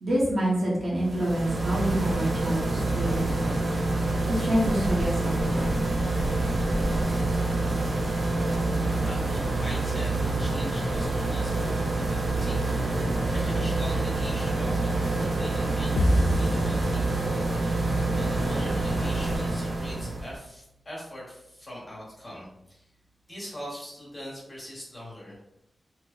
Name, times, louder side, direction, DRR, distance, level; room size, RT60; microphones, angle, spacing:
voice 1, 0.0-3.6 4.3-5.8, right 1 dB, 85° right, -6 dB, 1.2 m, -27 dB
sound 1, 0.9-20.3, right 2 dB, 45° right, 0.6 m, -27 dB
voice 2, 9.1-17.1 18.1-22.8 23.3-25.4, equal, 20° left, -6 dB, 1.3 m, -42 dB
sound 2, 16.0-17.8, equal, 85° left, 0.4 m, -26 dB
2.9 x 2.2 x 3.5 m, 0.80 s
wide cardioid pair, 155°, 0 cm